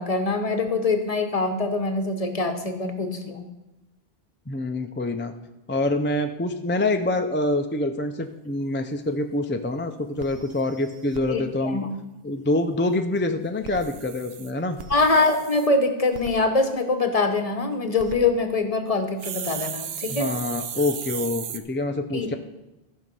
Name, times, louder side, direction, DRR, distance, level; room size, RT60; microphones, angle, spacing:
voice 1, 0.0-3.4 11.3-11.9 14.9-20.3 22.1-22.3, left 3 dB, 40° left, 7 dB, 1.0 m, -24 dB
voice 2, 4.5-5.3 5.7-11.8 12.2-14.8 20.1-22.3, left 2 dB, 20° left, 6 dB, 0.3 m, -26 dB
sound 1, 9.0-9.1 9.5-9.6 9.8-9.9 10.2-11.2 13.5-15.7 16.1-16.3 17.8-18.2 19.2-21.6, right 8 dB, 75° right, 0.9 m, -35 dB
14.0 x 5.5 x 5.3 m, 0.98 s
omnidirectional pair, 1.0 m